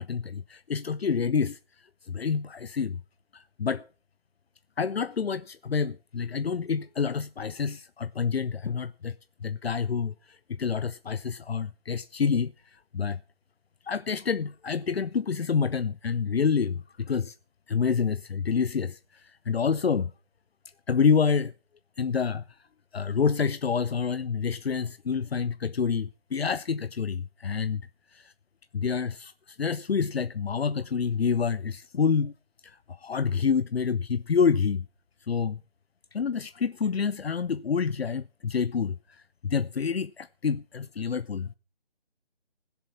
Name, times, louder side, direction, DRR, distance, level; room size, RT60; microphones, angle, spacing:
voice 1, 0.0-1.6 2.1-3.0 3.3-3.8 4.8-9.1 9.4-12.5 12.9-13.2 13.8-17.3 17.7-20.1 20.9-21.5 22.0-22.4 22.9-27.8 28.1-28.3 28.7-32.3 32.6-34.9 35.3-35.6 36.1-41.5, left 6 dB, 75° left, 0.7 m, -28 dB
16.0 x 7.0 x 7.2 m
figure-of-eight pair, 165°, 31 cm